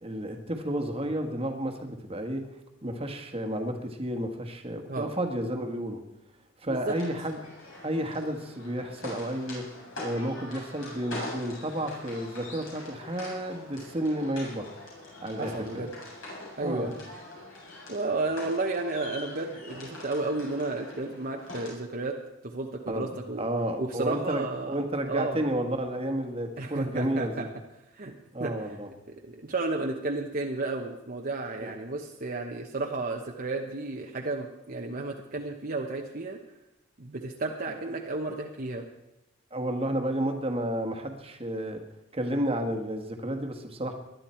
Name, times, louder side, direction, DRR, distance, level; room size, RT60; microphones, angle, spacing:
voice 1, 0.0-2.4 2.8-6.0 6.6-7.5 7.8-9.7 10.0-14.7 15.2-15.9 16.6-16.9 22.9-27.5 28.3-28.9 31.6-31.7 37.9-38.0 39.5-41.8 42.1-43.9, right 1 dB, 30° right, 5 dB, 1.6 m, -31 dB
sound 1, 6.9-21.7, left 2 dB, 75° left, 7.2 m, -43 dB
voice 2, 15.4-15.9 16.6-16.9 17.9-22.1 22.4-23.4 23.8-24.8 25.1-25.5 26.6-27.5 27.9-28.1 28.4-28.5 29.2-36.4 37.0-38.8, right 2 dB, 45° right, 1 dB, 1.1 m, -32 dB
20.5 x 12.0 x 4.5 m, 0.95 s
head